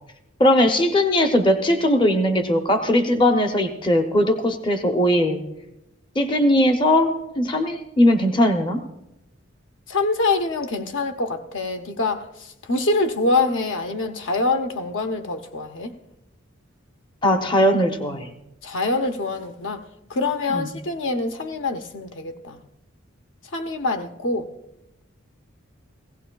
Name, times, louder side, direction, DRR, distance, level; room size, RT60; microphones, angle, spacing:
voice 1, 0.4-5.4 6.2-8.8 17.2-18.3 20.5-20.7, left 1 dB, 25° left, 0.7 m, -19 dB
voice 2, 9.9-15.9 18.6-19.8 20.1-22.6 23.5-24.5, left 3 dB, 65° left, 0.8 m, -25 dB
18.5 x 16.0 x 2.3 m
head